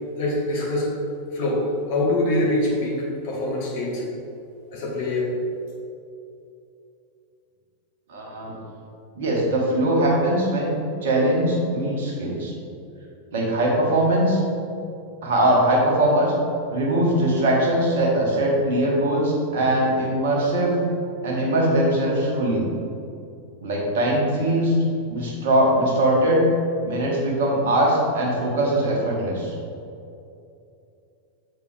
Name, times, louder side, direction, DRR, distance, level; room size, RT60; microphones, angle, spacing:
voice 1, 0.2-0.9 1.3-4.0 4.7-5.3, left 2 dB, 50° left, -3 dB, 1.4 m, -24 dB
voice 2, 8.1-8.6 9.1-10.8 11.0-12.5 13.3-14.4 15.2-16.3 16.7-20.8 21.2-22.7 23.6-24.7 25.1-26.5 26.8-29.5, right 1 dB, 55° right, -2 dB, 1.4 m, -21 dB
7.0 x 4.5 x 3.3 m, 2.6 s
figure-of-eight pair, 90°, 0 cm